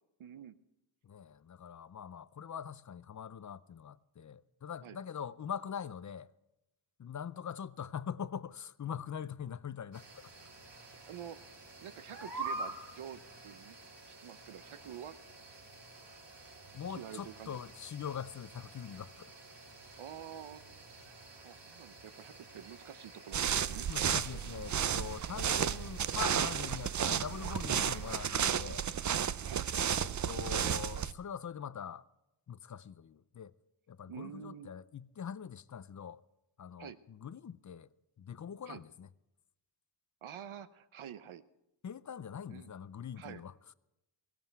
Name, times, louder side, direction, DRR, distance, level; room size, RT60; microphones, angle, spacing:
voice 1, 0.2-0.6 4.8-5.0 11.1-11.4 11.8-13.8 14.2-15.2 16.9-17.6 20.0-20.6 21.0-21.1 21.4-23.9 29.4-29.7 34.1-34.7 36.8-37.0 38.7-38.8 40.2-41.4 42.5-42.7 43.2-43.4, right 9 dB, 75° right, 0.8 m, -47 dB
voice 2, 1.0-6.3 7.0-10.3 16.7-19.3 23.9-28.9 30.0-32.0 32.5-33.5 33.9-36.2 36.6-37.9 38.2-39.1 41.8-43.5, left 8 dB, 40° left, 0.5 m, -43 dB
sound 1, 9.9-28.2, right 3 dB, 55° right, 4.1 m, -49 dB
sound 2, 23.3-31.1, right 8 dB, 40° right, 0.5 m, -33 dB
18.0 x 16.0 x 4.6 m
wide cardioid pair, 110°, 49 cm